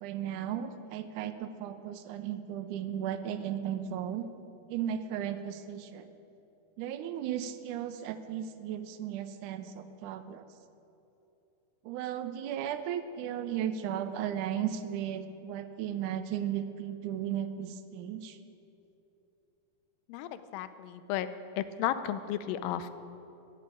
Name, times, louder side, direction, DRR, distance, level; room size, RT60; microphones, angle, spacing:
voice 1, 0.0-4.3 4.7-6.1 6.8-10.5 11.8-18.4, right 10 dB, 80° right, 10 dB, 1.8 m, -35 dB
voice 2, 20.1-21.3 21.6-22.9, left 11 dB, 80° left, 12 dB, 2.3 m, -33 dB
14.0 x 8.5 x 9.0 m, 2.9 s
omnidirectional pair, 4.3 m